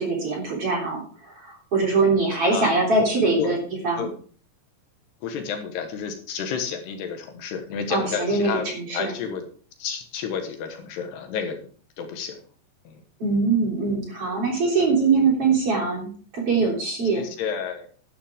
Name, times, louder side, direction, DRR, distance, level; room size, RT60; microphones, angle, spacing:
voice 1, 0.0-3.6 3.8-4.1 7.9-9.1 13.2-17.2, right 4 dB, 35° right, -1 dB, 4.0 m, -23 dB
voice 2, 5.2-9.4 9.8-11.6 12.0-12.4 12.8-13.0 17.1-17.9, left 7 dB, 70° left, 5 dB, 3.3 m, -30 dB
12.0 x 11.5 x 3.6 m, 0.44 s
omnidirectional pair, 5.1 m